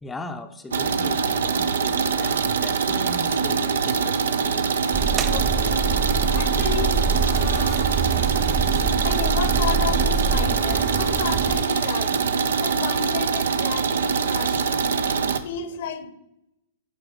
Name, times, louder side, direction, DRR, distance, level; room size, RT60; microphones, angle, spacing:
voice 1, 0.0-4.7 14.4-14.7, left 2 dB, 10° left, 0.6 m, -38 dB
sound 1, 0.7-15.4, right 5 dB, 75° right, 0.6 m, -23 dB
sound 2, 4.9-11.6, right 5 dB, 25° right, 0.4 m, -25 dB
voice 2, 5.3-6.0 6.3-8.0 9.0-12.2 12.6-14.9 15.4-16.1, left 7 dB, 60° left, 0.9 m, -33 dB
11.0 x 4.2 x 5.0 m
hypercardioid pair, 110°, 0 cm